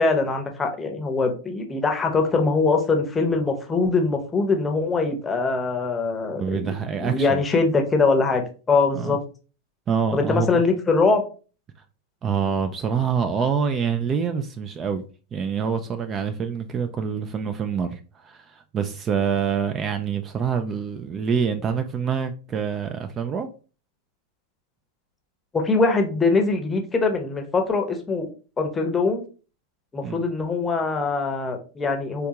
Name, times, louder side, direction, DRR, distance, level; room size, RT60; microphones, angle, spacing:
voice 1, 0.0-9.2 10.1-11.2 25.5-28.3 28.6-29.2 29.9-32.3, left 3 dB, 15° left, 0.7 m, -22 dB
voice 2, 6.3-7.4 8.9-9.2 9.9-10.6 12.2-15.0 15.3-23.5 30.0-30.2, right 6 dB, 30° right, 0.3 m, -26 dB
3.5 x 2.3 x 2.8 m
hypercardioid pair, 100°, 0 cm